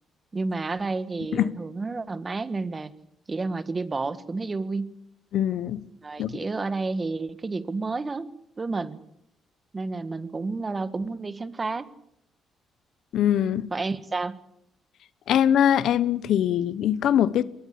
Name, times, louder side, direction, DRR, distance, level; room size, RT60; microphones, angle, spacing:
voice 1, 0.3-2.9 3.3-4.9 6.0-8.3 8.6-9.0 9.7-11.9 13.7-14.4, right 3 dB, 30° right, 1.5 m, -30 dB
voice 2, 5.3-5.8 6.2-6.3 13.1-13.7 15.3-17.4, left 10 dB, 75° left, 0.9 m, -22 dB
22.0 x 19.0 x 8.5 m
cardioid pair, 90°, 0 cm